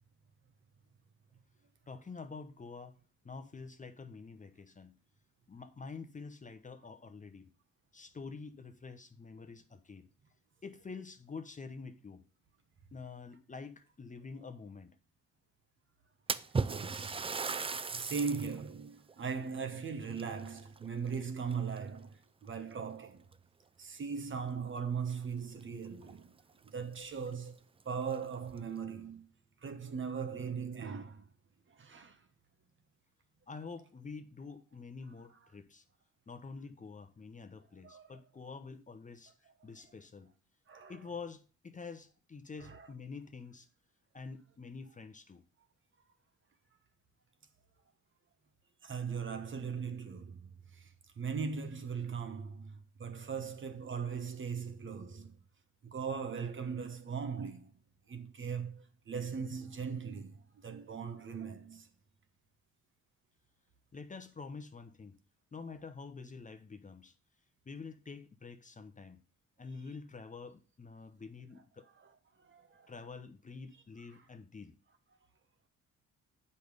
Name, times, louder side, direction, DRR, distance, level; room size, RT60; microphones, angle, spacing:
voice 1, 1.9-3.0 3.2-5.0 5.5-7.5 7.9-10.1 10.6-12.2 12.9-15.0 33.5-35.8 36.3-40.3 40.9-43.7 44.1-45.4 63.9-65.2 65.5-67.1 67.7-69.2 69.6-71.9 72.9-74.8, left 4 dB, 25° left, 0.9 m, -47 dB
Splash splatter, 16.3-18.6 19.1-19.2 20.1-21.1 21.5-22.0 22.8-22.9 23.3-23.4 25.6-25.7 26.0-26.1 26.7-26.8 27.2-27.3 28.0-28.6, right 4 dB, 20° right, 0.4 m, -36 dB
voice 2, 16.6-23.3 23.8-26.3 26.6-27.6 27.8-29.3 29.6-31.3 31.7-32.2 37.8-38.1 40.7-41.0 42.6-42.9 48.8-55.3 55.8-57.7 58.1-61.9 72.4-72.9, right 6 dB, 40° right, 1.2 m, -39 dB
7.8 x 5.5 x 5.0 m
cardioid pair, 90°, 30 cm